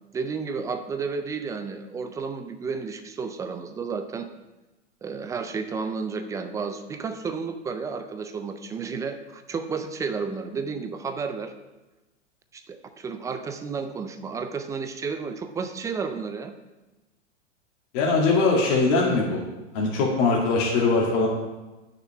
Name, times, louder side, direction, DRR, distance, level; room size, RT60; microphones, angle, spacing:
voice 1, 0.1-4.3 5.0-11.5 12.5-16.5, right 5 dB, 10° right, 8 dB, 0.4 m, -32 dB
voice 2, 17.9-19.4 19.7-21.3, left 3 dB, 45° left, -3 dB, 2.2 m, -21 dB
6.4 x 6.0 x 7.2 m, 1.1 s
hypercardioid pair, 105°, 36 cm